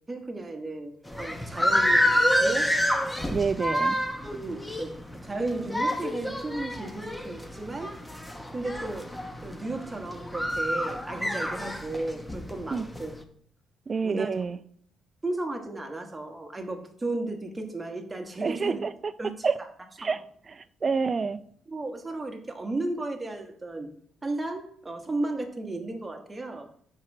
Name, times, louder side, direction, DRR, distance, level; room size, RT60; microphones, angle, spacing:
voice 1, 0.1-2.1 2.4-2.8 4.2-4.9 5.2-8.0 8.5-9.1 9.4-13.1 14.0-14.3 15.2-18.8 19.2-19.7 20.0-20.2 21.7-23.9 24.2-26.7, right 2 dB, 20° right, 1.2 m, -34 dB
sound 1, 1.1-13.2, equal, 10° left, 0.8 m, -28 dB
voice 2, 3.3-4.0 12.7-12.8 13.9-14.6 18.4-18.9 19.4-19.6 20.0-20.2 20.5-21.4, right 5 dB, 35° right, 0.4 m, -27 dB
4.7 x 4.5 x 5.9 m
cardioid pair, 90°, 0 cm